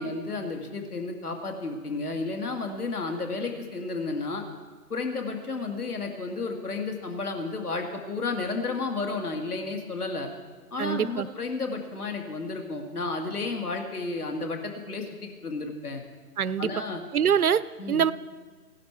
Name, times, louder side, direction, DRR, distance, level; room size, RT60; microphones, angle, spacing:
voice 1, 0.0-4.4 4.9-10.3 10.7-16.0 16.6-17.0 17.8-18.0, left 3 dB, 65° left, 4 dB, 2.3 m, -32 dB
voice 2, 10.8-11.3 16.4-16.7 17.1-17.6 17.9-18.1, right 8 dB, 65° right, 17 dB, 0.6 m, -23 dB
16.5 x 11.5 x 4.6 m, 1.4 s
figure-of-eight pair, 150°, 48 cm